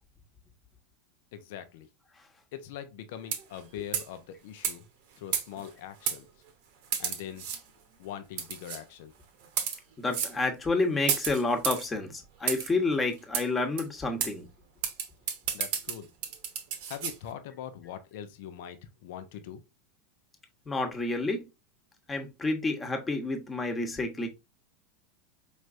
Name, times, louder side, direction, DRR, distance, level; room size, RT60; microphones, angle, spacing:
voice 1, 1.3-1.9 2.5-4.9 5.2-6.3 7.0-7.5 8.0-9.1 15.5-16.1 16.9-19.6, left 9 dB, 65° left, 0.6 m, -42 dB
sound 1, 3.2-3.6 3.9-4.1 4.6-4.8 5.3-5.7 6.1-6.2 6.9-7.6 8.4-8.8 9.4-9.8 10.1-10.4 11.1-11.8 12.5-12.7 13.3-13.5 13.8-13.9 14.2-14.3 14.8-17.1, right 8 dB, 60° right, 0.9 m, -31 dB
voice 2, 10.0-14.5 20.7-21.4 22.1-24.3, left 3 dB, 20° left, 1.2 m, -29 dB
4.8 x 3.1 x 2.5 m
hypercardioid pair, 90°, 0 cm